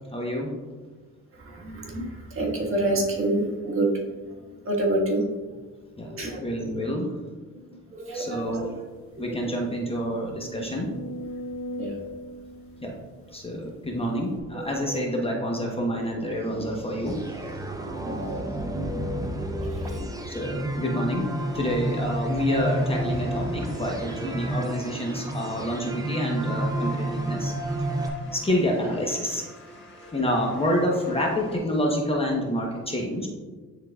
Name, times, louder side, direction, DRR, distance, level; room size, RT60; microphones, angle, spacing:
voice 1, 0.1-0.5 6.0-6.1 6.4-7.1 8.1-8.7 9.2-10.9 12.8-12.9 13.3-17.4 20.3-21.3 21.5-27.5 27.9-28.0 28.3-29.5 30.1-33.3, equal, 20° left, -1 dB, 1.0 m, -28 dB
voice 2, 1.3-4.4 4.6-5.3 6.0-6.7 7.7-8.7 9.2-9.5 11.8-12.0 14.5-14.7 18.0-19.0 19.6-20.0 24.2-24.3 28.2-28.3 30.0-30.1, right 1 dB, 45° right, -3 dB, 1.6 m, -29 dB
sound 1, 8.3-8.4 8.8-8.9 9.5-13.7 14.4-14.5, equal, 75° left, 0.9 m, -39 dB
sound 2, 17.1-28.1, right 1 dB, 10° right, 0.7 m, -30 dB
sound 3, 21.2-31.6, left 2 dB, 40° left, 1.7 m, -47 dB
11.0 x 3.8 x 2.4 m, 1.3 s
cardioid pair, 90°, 30 cm